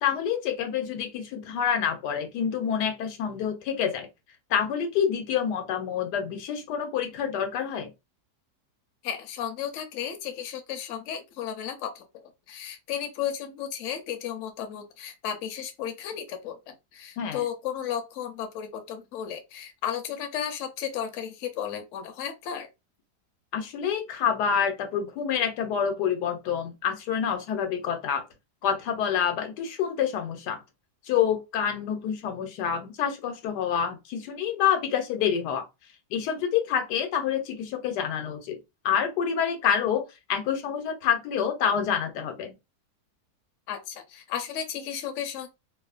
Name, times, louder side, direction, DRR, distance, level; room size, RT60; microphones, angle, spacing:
voice 1, 0.0-4.1 4.5-7.9 17.2-17.4 23.5-28.2 28.6-30.6 31.0-35.7 36.1-38.6 38.8-42.5, left 8 dB, 85° left, 1.2 m, -27 dB
voice 2, 9.0-22.7 43.7-45.5, left 9 dB, 65° left, 0.8 m, -34 dB
2.9 x 2.0 x 2.4 m
omnidirectional pair, 1.7 m